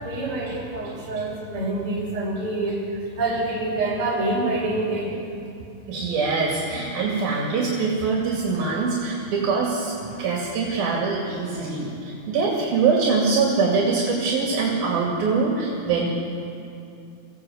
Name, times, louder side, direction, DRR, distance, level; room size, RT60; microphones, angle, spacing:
voice 1, 0.0-2.8 3.2-5.1 8.5-8.7, right 2 dB, 35° right, -4 dB, 6.1 m, -26 dB
voice 2, 5.9-16.1, right 4 dB, 70° right, -2 dB, 4.3 m, -23 dB
27.0 x 16.5 x 8.0 m, 2.6 s
omnidirectional pair, 4.5 m